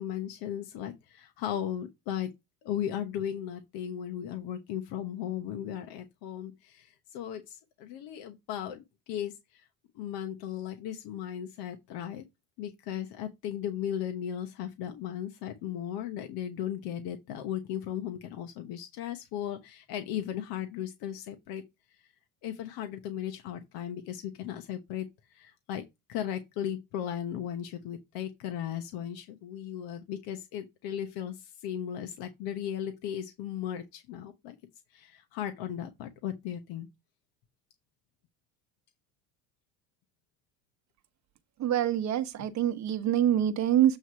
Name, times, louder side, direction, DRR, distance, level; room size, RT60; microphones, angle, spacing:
voice 1, 0.0-2.3 2.6-9.7 9.9-12.2 12.6-21.6 22.4-25.8 26.1-34.6 34.9-36.9, left 10 dB, 70° left, 1.1 m, -36 dB
voice 2, 41.6-44.0, right 11 dB, 45° right, 1.0 m, -25 dB
7.9 x 3.2 x 5.6 m
cardioid pair, 120°, 39 cm